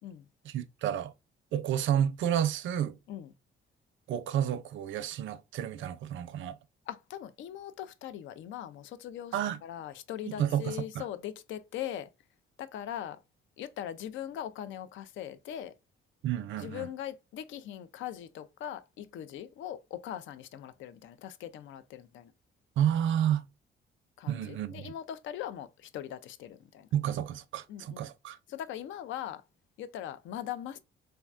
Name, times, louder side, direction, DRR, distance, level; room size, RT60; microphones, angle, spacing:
voice 1, 0.4-1.1 1.5-3.0 4.1-6.6 9.3-9.6 10.3-11.1 16.2-16.9 22.8-23.4 24.3-24.9 26.9-28.4, right 10 dB, 75° right, 0.4 m, -30 dB
voice 2, 6.9-12.1 12.6-13.2 13.6-15.7 16.6-22.3 24.2-26.9 27.7-28.1 28.5-29.4 29.8-30.8, left 11 dB, 75° left, 0.4 m, -40 dB
3.4 x 2.1 x 2.4 m
cardioid pair, 90°, 20 cm